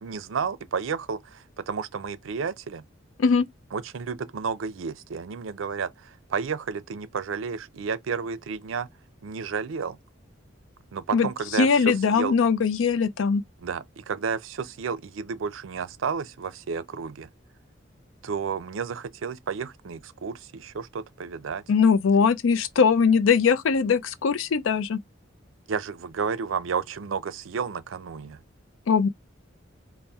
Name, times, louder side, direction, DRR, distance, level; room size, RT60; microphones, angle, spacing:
voice 1, 0.0-2.8 3.7-8.9 9.2-10.0 10.9-12.4 13.6-17.3 18.2-21.6 25.7-28.4, right 5 dB, 85° right, 0.5 m, -31 dB
voice 2, 11.6-13.4 21.7-25.0 28.9-29.1, left 5 dB, 80° left, 0.4 m, -21 dB
4.1 x 2.1 x 3.4 m
head